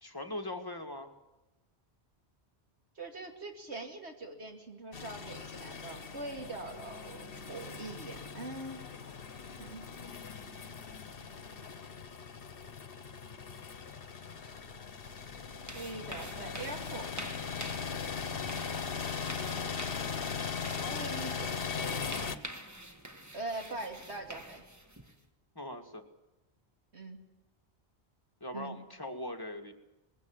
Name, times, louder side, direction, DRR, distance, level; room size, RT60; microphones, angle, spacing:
voice 1, 0.0-1.1 25.6-26.0 28.4-29.7, left 1 dB, 20° left, 4 dB, 2.0 m, -40 dB
voice 2, 3.0-8.8 9.6-9.9 15.7-17.5 20.8-22.2 23.3-24.7 26.9-27.2 28.5-28.8, right 2 dB, 80° right, 3 dB, 2.9 m, -43 dB
sound 1, 4.9-22.4, left 6 dB, 60° left, 1.3 m, -39 dB
sound 2, 15.0-25.3, right 1 dB, 15° right, 1.6 m, -48 dB
21.5 x 16.5 x 9.0 m, 1.1 s
omnidirectional pair, 1.1 m